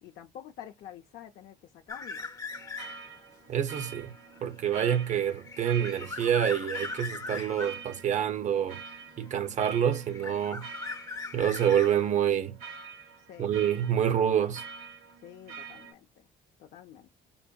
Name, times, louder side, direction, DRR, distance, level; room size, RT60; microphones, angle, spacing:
voice 1, 0.0-2.3 13.3-13.6 15.2-16.3 16.6-17.1, left 10 dB, 65° left, 0.6 m, -48 dB
sound 1, 1.9-3.2 3.6-7.8 8.9-9.7 9.9-12.4, left 4 dB, 20° left, 0.6 m, -40 dB
sound 2, 2.5-15.9, right 5 dB, 70° right, 2.1 m, -46 dB
voice 2, 3.5-4.1 4.4-8.8 9.2-10.7 11.3-12.6 13.4-14.6, right 9 dB, 45° right, 0.7 m, -27 dB
5.2 x 2.6 x 2.3 m
cardioid pair, 110°, 17 cm